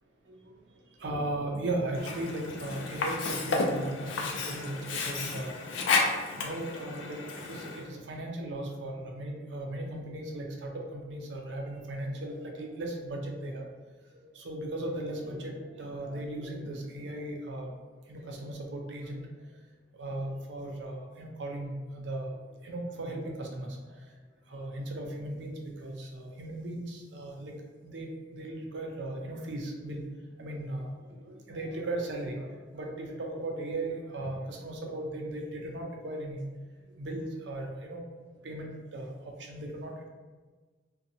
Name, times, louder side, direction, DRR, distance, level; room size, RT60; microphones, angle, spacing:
voice 1, 1.0-5.5 6.4-13.7 14.3-17.7 18.1-19.3 20.0-23.8 24.5-27.5 27.8-30.0 30.4-36.4 37.0-38.0 38.4-40.1, right 1 dB, 75° right, 1 dB, 0.5 m, -37 dB
Sink (filling or washing), 1.9-7.9, left 3 dB, 90° left, 0.4 m, -32 dB
2.6 x 2.2 x 2.7 m, 1.3 s
head